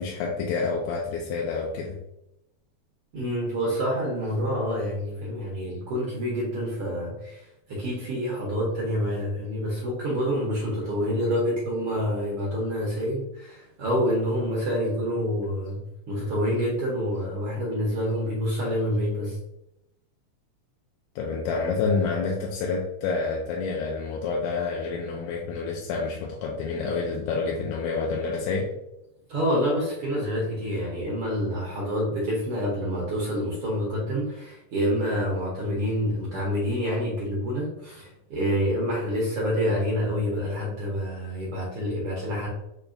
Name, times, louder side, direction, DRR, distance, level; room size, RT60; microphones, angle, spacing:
voice 1, 0.0-2.0 21.2-28.7, left 4 dB, 80° left, -1 dB, 1.9 m, -28 dB
voice 2, 3.1-15.8 16.1-19.4 29.3-42.5, equal, 70° right, -4 dB, 1.3 m, -27 dB
6.7 x 2.9 x 2.6 m, 0.84 s
omnidirectional pair, 3.9 m